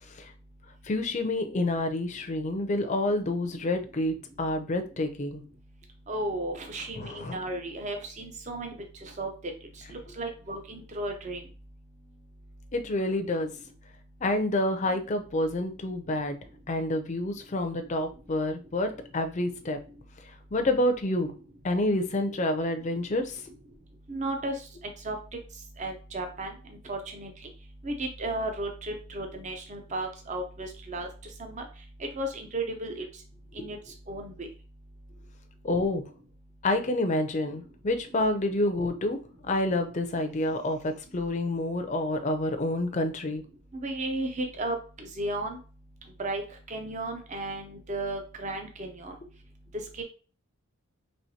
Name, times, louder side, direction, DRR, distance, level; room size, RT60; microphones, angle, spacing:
voice 1, 0.9-5.4 7.0-7.4 12.7-13.5 14.2-16.4 16.7-19.8 20.5-21.3 21.6-23.4 33.6-33.7 35.6-36.0 36.6-39.2 39.4-43.4, left 1 dB, 30° left, 6 dB, 0.5 m, -28 dB
voice 2, 6.1-8.7 9.0-9.3 9.9-11.4 24.1-24.5 25.0-25.2 25.8-26.5 26.9-27.3 27.8-31.1 31.4-31.6 32.1-33.0 33.6-33.8 34.1-34.5 43.7-45.6 46.2-46.4 46.7-49.1 50.0-50.1, right 2 dB, 35° right, 4 dB, 0.5 m, -34 dB
4.4 x 3.0 x 2.7 m, 0.38 s
head